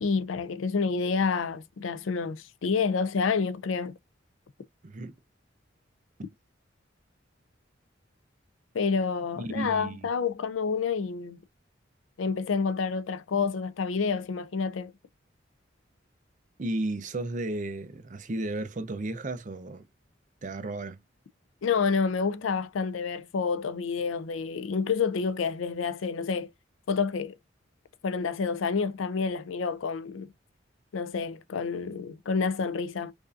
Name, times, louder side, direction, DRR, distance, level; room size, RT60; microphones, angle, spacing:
voice 1, 0.0-3.9 8.7-11.4 12.2-14.9 21.6-26.5 26.9-27.4 28.0-30.3 30.9-33.1, left 5 dB, 90° left, 0.4 m, -28 dB
voice 2, 4.8-5.1 9.4-10.1 16.6-19.9 20.4-21.0, right 2 dB, 40° right, 0.6 m, -33 dB
5.1 x 2.5 x 2.5 m
head